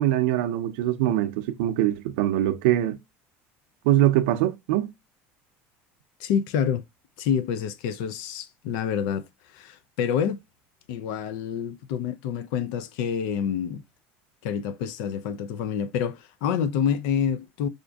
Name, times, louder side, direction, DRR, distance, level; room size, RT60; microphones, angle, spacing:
voice 1, 0.0-3.0 3.8-4.9, right 13 dB, 80° right, 0.5 m, -23 dB
voice 2, 6.2-6.8 7.2-9.3 9.5-10.4 10.9-13.8 14.4-17.7, left 8 dB, 65° left, 0.4 m, -27 dB
4.8 x 2.5 x 2.2 m
cardioid pair, 170°, 5 cm